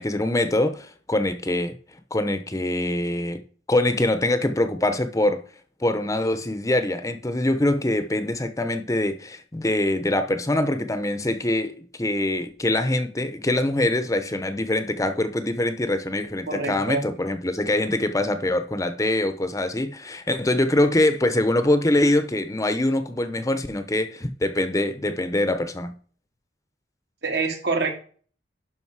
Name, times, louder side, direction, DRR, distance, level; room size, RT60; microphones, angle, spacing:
voice 1, 0.0-1.7 2.1-3.4 3.7-5.4 5.8-25.9, left 1 dB, 20° left, 0.8 m, -24 dB
voice 2, 16.5-17.0 27.2-27.9, right 4 dB, 65° right, 2.3 m, -25 dB
11.5 x 5.2 x 4.7 m
head